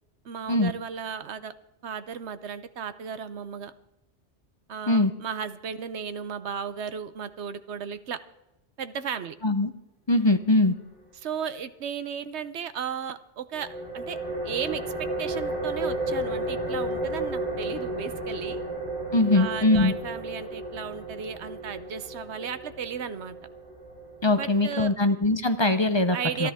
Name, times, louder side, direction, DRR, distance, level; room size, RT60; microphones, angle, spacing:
voice 1, 0.2-1.5 1.8-3.7 4.7-8.2 8.8-9.3 11.1-13.7 13.9-14.2 14.4-18.6 19.3-23.4 24.4-24.9 26.1-26.5, right 7 dB, 70° right, 13 dB, 1.0 m, -35 dB
voice 2, 10.1-10.7 19.1-19.9 24.2-26.5, left 2 dB, 30° left, 10 dB, 0.7 m, -22 dB
sound 1, 13.5-24.9, right 1 dB, 55° right, 5.3 m, -33 dB
27.5 x 10.5 x 3.6 m, 0.90 s
omnidirectional pair, 1.2 m